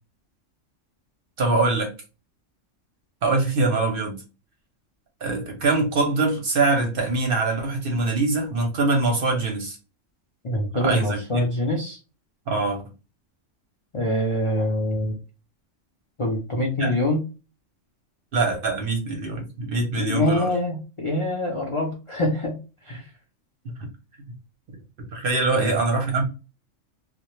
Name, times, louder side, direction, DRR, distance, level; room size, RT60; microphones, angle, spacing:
voice 1, 1.4-1.9 3.2-4.2 5.2-9.8 10.8-11.4 12.5-12.8 16.8-16.9 18.3-20.5 23.6-23.9 25.1-26.2, right 3 dB, 55° right, 0.7 m, -23 dB
voice 2, 10.4-12.0 13.9-15.2 16.2-17.2 20.0-22.6 22.8-23.1 25.5-25.8, left 1 dB, 55° left, 0.3 m, -25 dB
2.1 x 2.1 x 3.0 m
omnidirectional pair, 1.3 m